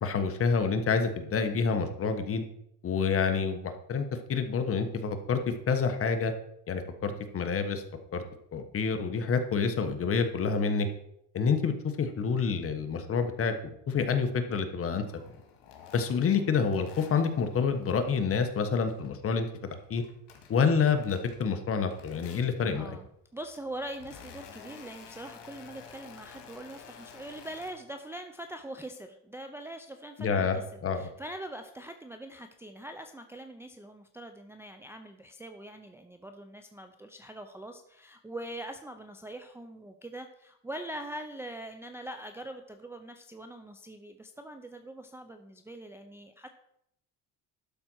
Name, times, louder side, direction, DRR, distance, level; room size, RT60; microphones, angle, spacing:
voice 1, 0.0-2.4 2.8-5.4 5.7-6.3 6.7-7.8 8.1-8.2 8.5-10.9 11.3-15.2 15.9-19.5 19.9-20.0 20.5-23.0 30.2-31.0, left 5 dB, 35° left, 7 dB, 1.3 m, -28 dB
sound 1, 15.1-19.2 19.5-21.6 21.9-22.8 23.4-27.7, left 7 dB, 85° left, 2.3 m, -51 dB
voice 2, 22.7-30.6 30.9-46.5, right 1 dB, 5° right, 5 dB, 0.5 m, -43 dB
12.0 x 4.3 x 6.2 m, 0.75 s
cardioid pair, 130°, 38 cm